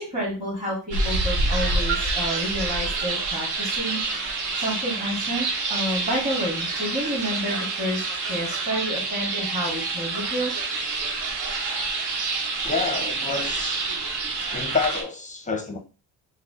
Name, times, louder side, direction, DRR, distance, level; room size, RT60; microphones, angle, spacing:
voice 1, 0.0-4.0 4.6-10.5, equal, 15° right, 1.8 m, -29 dB
sound 1, 0.9-15.0, right 3 dB, 70° right, 1.1 m, -27 dB
voice 2, 12.6-13.9 14.5-15.8, left 4 dB, 20° left, 0.6 m, -28 dB
3.8 x 2.1 x 3.6 m
cardioid pair, 100°, 41 cm